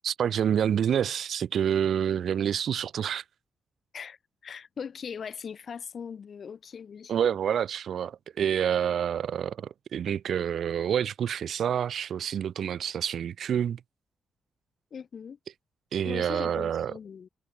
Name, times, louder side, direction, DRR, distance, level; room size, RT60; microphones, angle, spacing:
voice 1, 0.0-3.2 7.1-13.8 15.9-17.0, right 9 dB, 65° right, 0.6 m, -28 dB
voice 2, 4.4-7.1 14.9-15.4 16.0-17.3, left 7 dB, 50° left, 3.8 m, -39 dB
cardioid pair, 120°, 0 cm